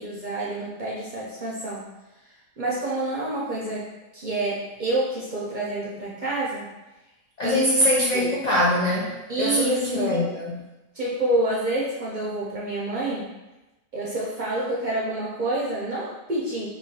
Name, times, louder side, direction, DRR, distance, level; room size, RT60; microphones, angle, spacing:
voice 1, 0.0-1.9 2.6-3.9 4.1-6.7 7.4-7.6 8.1-8.3 9.3-10.3 10.9-13.3 13.9-16.7, right 2 dB, 50° right, -6 dB, 0.6 m, -28 dB
voice 2, 7.4-10.6, left 1 dB, 70° left, -5 dB, 0.4 m, -23 dB
3.0 x 2.3 x 4.1 m, 1.0 s
omnidirectional pair, 1.5 m